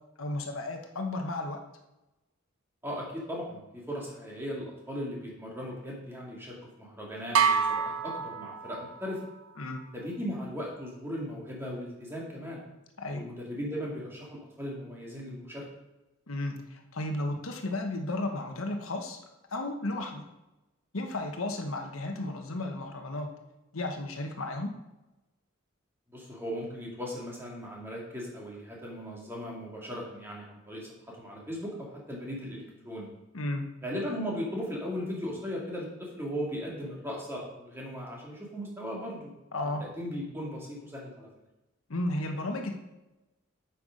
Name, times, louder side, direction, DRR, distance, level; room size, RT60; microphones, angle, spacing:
voice 1, 0.2-1.6 9.6-9.8 13.0-13.2 16.3-19.2 19.5-20.2 20.9-23.3 23.7-24.7 33.3-33.6 39.5-39.8 41.9-42.8, left 2 dB, 80° left, 4 dB, 1.1 m, -33 dB
voice 2, 2.8-3.6 3.9-9.2 9.9-12.6 13.1-15.6 26.1-33.1 33.8-39.3 39.8-41.3, equal, 10° right, -3 dB, 2.2 m, -37 dB
sound 1, 7.3-9.1, right 6 dB, 80° right, 0.7 m, -27 dB
8.4 x 5.9 x 5.1 m, 1.0 s
head